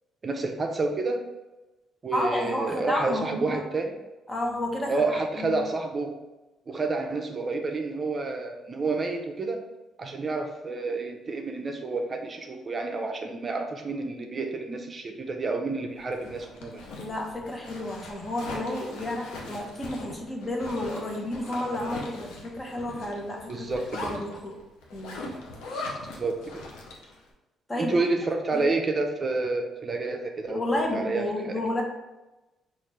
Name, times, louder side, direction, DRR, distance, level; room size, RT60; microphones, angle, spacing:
voice 1, 0.2-1.3 2.0-4.0 4.9-6.2 6.7-9.6 10.0-16.8 23.5-24.1 25.7-25.8 26.1-26.6 27.8-31.6, right 3 dB, 40° right, 3 dB, 0.5 m, -29 dB
voice 2, 2.1-3.6 4.3-5.6 17.0-23.7 23.9-24.6 24.9-25.2 25.6-26.1 27.7-28.0 28.5-28.6 30.5-31.8, left 1 dB, 25° left, 0 dB, 0.9 m, -31 dB
Zipper (clothing), 16.0-27.2, left 2 dB, 85° left, 0.6 m, -41 dB
4.1 x 2.4 x 3.2 m, 1.0 s
supercardioid pair, 65°, 0 cm